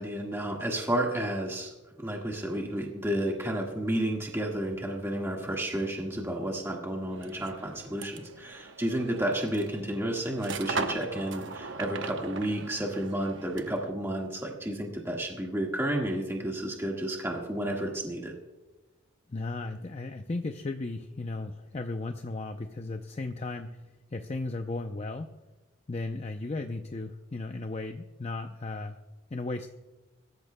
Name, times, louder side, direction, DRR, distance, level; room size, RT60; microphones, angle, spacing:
voice 1, 0.0-1.7 2.0-18.3, right 1 dB, 15° right, -1 dB, 1.6 m, -31 dB
sound 1, 7.1-13.9, right 4 dB, 65° right, 0.9 m, -39 dB
voice 2, 19.3-23.8 24.1-25.3 25.9-29.0 29.3-29.7, left 2 dB, 35° left, 6 dB, 0.5 m, -35 dB
22.0 x 13.5 x 2.2 m, 1.1 s
head